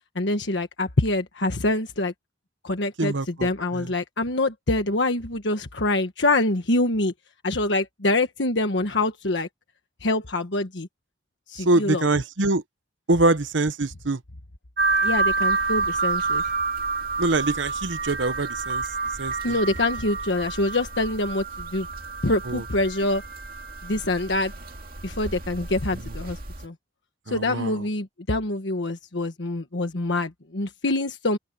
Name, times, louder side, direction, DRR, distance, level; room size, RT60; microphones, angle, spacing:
voice 1, 0.1-2.1 2.6-7.1 7.4-9.5 10.0-10.9 11.5-12.1 15.0-16.4 19.4-21.9 22.2-23.2 23.8-24.5 25.0-26.4 26.6-26.7 27.3-31.4, left 2 dB, 75° left, 1.4 m, -25 dB
voice 2, 3.0-3.9 11.6-12.6 13.1-14.2 17.2-18.8 19.2-19.6 22.5-22.6 27.3-27.8, right 2 dB, 90° right, 1.0 m, -24 dB
sound 1, 14.8-26.7, right 4 dB, 50° right, 2.4 m, -29 dB
open air
head